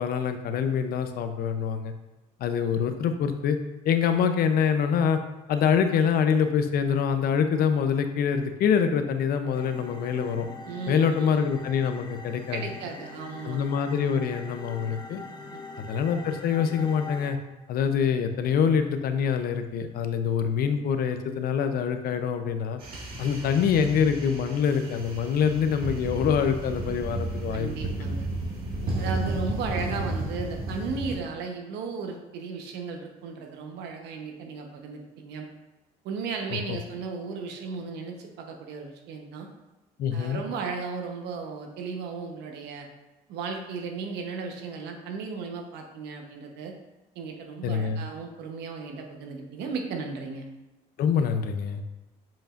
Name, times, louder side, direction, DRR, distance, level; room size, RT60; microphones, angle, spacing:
voice 1, 0.0-1.9 2.4-3.6 3.8-5.2 5.5-10.5 10.9-12.6 13.4-15.2 15.9-17.4 17.7-22.8 23.2-27.7 28.8-29.1 36.5-36.8 40.0-40.4 47.6-48.0 51.0-51.8, left 7 dB, 65° left, 8 dB, 0.6 m, -25 dB
sound 1, 9.5-17.3, left 3 dB, 25° left, 0.7 m, -42 dB
voice 2, 10.7-11.3 12.5-13.6 15.4-15.6 27.5-28.3 29.0-35.5 36.0-39.5 40.1-42.9 43.3-46.7 47.1-50.5, right 4 dB, 85° right, 3 dB, 1.0 m, -35 dB
sound 2, 22.8-31.2, right 2 dB, 60° right, 1.8 m, -33 dB
7.2 x 5.1 x 2.5 m, 1.1 s
cardioid pair, 110°, 17 cm